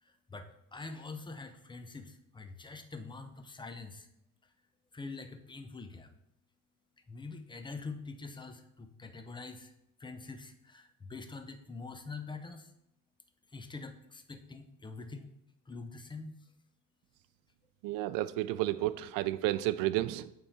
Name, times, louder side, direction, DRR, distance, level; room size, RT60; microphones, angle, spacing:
voice 1, 0.0-4.1 4.9-6.1 7.1-9.7 10.0-12.7 13.5-15.3 15.7-16.5, left 3 dB, 15° left, 8 dB, 0.5 m, -45 dB
voice 2, 17.8-20.3, right 15 dB, 70° right, 15 dB, 0.5 m, -31 dB
8.5 x 3.6 x 4.1 m, 0.82 s
cardioid pair, 125°, 35 cm